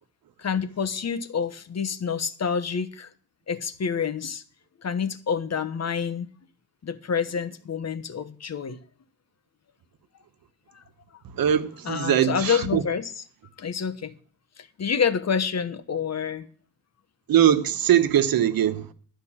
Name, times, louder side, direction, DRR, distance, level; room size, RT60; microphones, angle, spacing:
voice 1, 0.4-3.1 3.5-4.4 4.8-6.3 6.8-8.8 10.7-10.8 11.8-13.1 13.6-14.1 14.6-16.5, left 6 dB, 50° left, 1.1 m, -28 dB
voice 2, 11.3-12.8 17.3-18.9, right 10 dB, 85° right, 1.1 m, -21 dB
12.5 x 5.2 x 8.7 m
cardioid pair, 90°, 34 cm